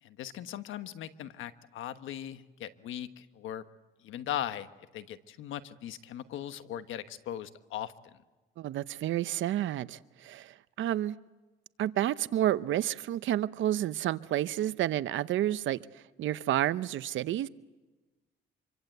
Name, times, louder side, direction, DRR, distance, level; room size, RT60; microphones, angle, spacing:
voice 1, 0.0-3.6 4.0-4.7 4.9-7.9, left 11 dB, 80° left, 11 dB, 1.3 m, -39 dB
voice 2, 8.6-11.1 11.8-15.8 16.2-17.5, right 12 dB, 75° right, 15 dB, 0.8 m, -30 dB
26.5 x 24.0 x 8.0 m, 1.2 s
cardioid pair, 90°, 20 cm